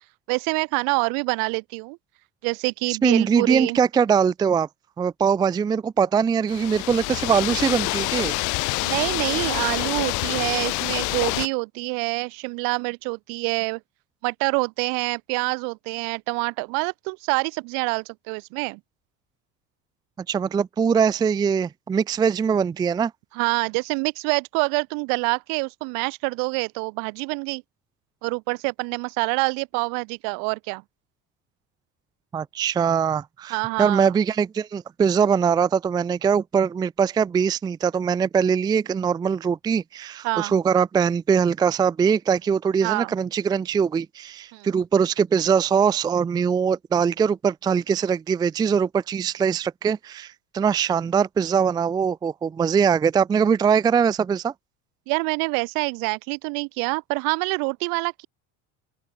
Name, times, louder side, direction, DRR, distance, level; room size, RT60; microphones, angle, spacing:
voice 1, 0.3-2.0 2.4-3.8 8.8-13.8 14.2-18.8 23.3-27.6 28.2-30.8 33.5-34.1 40.2-40.5 42.8-43.1 44.5-44.7 55.1-58.3, right 37 dB, 70° right, 2.6 m, -26 dB
voice 2, 2.9-4.7 5.0-8.3 20.3-23.1 32.3-54.5, right 6 dB, 10° right, 0.4 m, -22 dB
sound 1, 6.5-11.5, left 26 dB, 55° left, 1.2 m, -26 dB
open air
cardioid pair, 170°, 35 cm